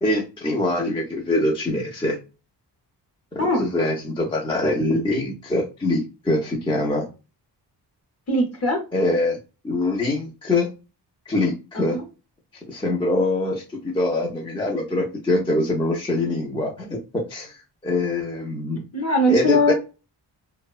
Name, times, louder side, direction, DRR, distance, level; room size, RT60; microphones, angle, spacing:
voice 1, 0.0-2.2 3.3-7.1 8.9-9.4 9.6-10.7 11.3-12.0 12.5-17.5 17.8-18.8 19.3-19.7, left 2 dB, 15° left, -1 dB, 0.3 m, -24 dB
voice 2, 3.4-3.7 8.3-8.8 11.7-12.0 18.9-19.7, equal, 40° left, 3 dB, 0.7 m, -21 dB
2.7 x 2.0 x 2.3 m, 0.30 s
wide cardioid pair, 170°, 41 cm